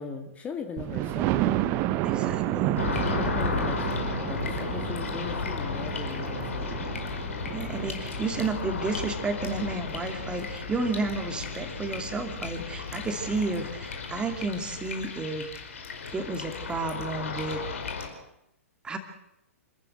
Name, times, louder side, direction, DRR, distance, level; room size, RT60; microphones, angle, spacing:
voice 1, 0.0-1.7 2.9-6.7, left 6 dB, 15° left, 6 dB, 2.1 m, -39 dB
Thunder, 0.8-10.5 11.1-11.2 11.6-11.7 11.9-12.0, right 14 dB, 30° right, 1.0 m, -31 dB
voice 2, 2.0-2.8 7.5-15.5 16.1-17.6 18.8-19.0, right 3 dB, 10° right, 6 dB, 2.6 m, -31 dB
sound 1, 2.8-18.1, left 5 dB, 60° left, 4.9 m, -34 dB
28.0 x 14.5 x 8.0 m, 0.83 s
figure-of-eight pair, 115°, 8 cm